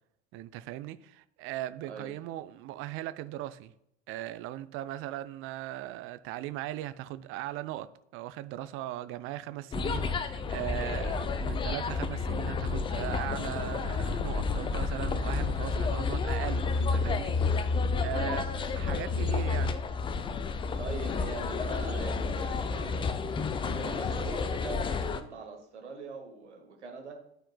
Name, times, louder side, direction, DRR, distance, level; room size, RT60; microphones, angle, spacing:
voice 1, 0.3-3.7 4.1-7.9 8.1-17.5 18.0-18.5 18.8-19.8, right 14 dB, 40° right, 0.5 m, -38 dB
sound 1, 9.7-25.2, left 4 dB, 15° left, 0.4 m, -30 dB
voice 2, 18.1-18.8 20.8-27.2, right 4 dB, 75° right, 1.4 m, -42 dB
12.0 x 4.5 x 2.2 m
figure-of-eight pair, 70°, 34 cm